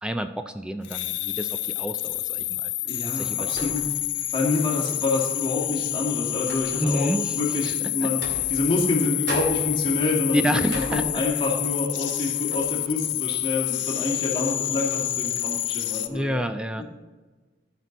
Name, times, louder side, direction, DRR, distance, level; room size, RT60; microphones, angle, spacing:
voice 1, 0.0-2.7 3.2-3.7 6.8-7.4 7.6-7.7 8.0-8.1 10.3-11.0 16.1-16.8, equal, 5° right, 9 dB, 0.3 m, -28 dB
sound 1, 0.8-16.1, left 16 dB, 85° left, 0.5 m, -28 dB
sound 2, 2.1-2.4 3.4-4.2 4.5-4.6 5.6-7.1 8.1-9.0 9.3-11.6 12.0-12.2 12.5-12.8, right 1 dB, 75° right, 2.4 m, -39 dB
voice 2, 2.9-3.8 4.3-10.5 10.9-16.4 16.8-16.9, left 2 dB, 25° left, -4 dB, 2.4 m, -27 dB
13.5 x 6.0 x 4.0 m, 1.3 s
head